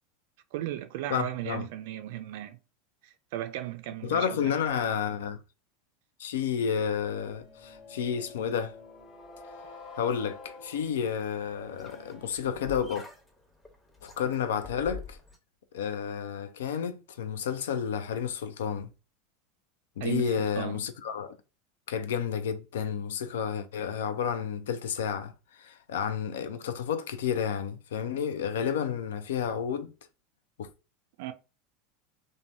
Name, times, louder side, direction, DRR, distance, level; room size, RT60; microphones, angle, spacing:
voice 1, 0.5-2.6 3.0-4.5 20.0-20.9 31.2-31.3, right 14 dB, 65° right, 0.3 m, -36 dB
voice 2, 1.1-1.7 4.0-5.4 6.2-8.7 10.0-13.1 14.0-15.2 15.7-18.9 20.0-21.4 21.9-25.3 25.6-29.9 30.6-30.7, left 7 dB, 70° left, 0.4 m, -31 dB
sound 1, 7.0-12.3, left 4 dB, 35° left, 1.2 m, -48 dB
sound 2, 10.9-15.4, left 4 dB, 15° left, 0.9 m, -46 dB
3.1 x 2.1 x 2.5 m
hypercardioid pair, 85°, 0 cm